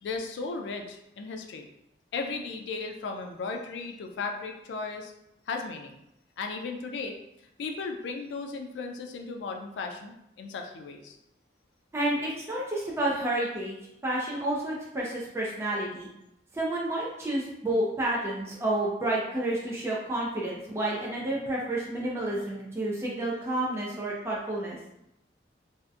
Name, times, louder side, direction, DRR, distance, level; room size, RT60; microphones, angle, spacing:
voice 1, 0.0-1.7 2.1-5.1 5.5-6.0 6.4-7.2 7.6-11.2, left 4 dB, 90° left, 3 dB, 0.3 m, -36 dB
voice 2, 11.9-13.8 14.0-16.1 16.5-24.8, right 1 dB, 15° right, -5 dB, 0.4 m, -30 dB
2.6 x 2.1 x 2.3 m, 0.83 s
head